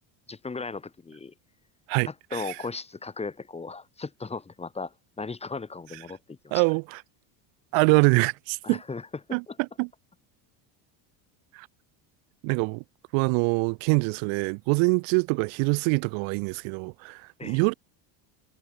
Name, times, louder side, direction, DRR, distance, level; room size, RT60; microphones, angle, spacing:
voice 1, 0.3-1.3 2.0-6.4 8.6-9.0 17.4-17.6, left 4 dB, 15° left, 3.4 m, -36 dB
voice 2, 1.9-2.6 6.5-7.0 7.7-8.8 9.3-9.9 11.5-11.7 12.4-12.8 13.1-17.7, right 36 dB, 65° right, 2.8 m, -24 dB
cardioid pair, 160°, 48 cm